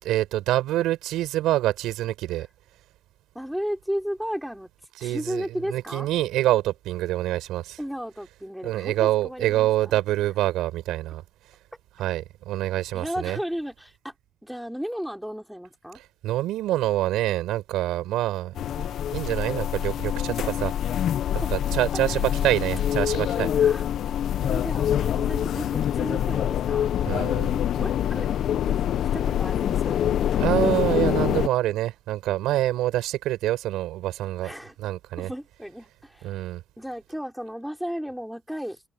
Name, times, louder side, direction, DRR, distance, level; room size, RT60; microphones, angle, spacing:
voice 1, 0.0-2.5 5.0-7.8 8.6-11.2 12.0-13.4 16.2-20.7 21.3-23.5 27.0-27.6 30.4-34.5 34.8-35.3 36.2-36.6, right 15 dB, 85° right, 4.6 m, -26 dB
voice 2, 3.3-4.7 5.0-6.1 7.8-9.7 12.9-14.1 14.4-16.0 21.4-21.5 21.9-22.6 23.4-23.9 24.4-26.9 27.6-28.3 28.7-28.8 29.1-30.0 34.4-34.7 35.2-36.4 36.8-38.8, equal, ahead, 4.8 m, -34 dB
sound 1, 18.6-31.5, left 10 dB, 65° left, 0.6 m, -25 dB
cardioid pair, 115°, 0 cm